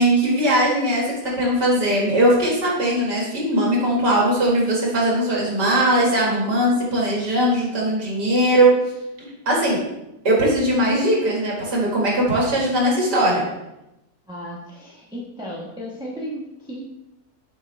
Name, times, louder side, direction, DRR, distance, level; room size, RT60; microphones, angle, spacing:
voice 1, 0.0-8.7 9.2-9.8 10.2-13.4, right 1 dB, 70° right, -3 dB, 2.5 m, -19 dB
voice 2, 14.3-16.8, equal, 5° right, -4 dB, 0.7 m, -34 dB
7.4 x 5.2 x 3.3 m, 0.93 s
omnidirectional pair, 1.9 m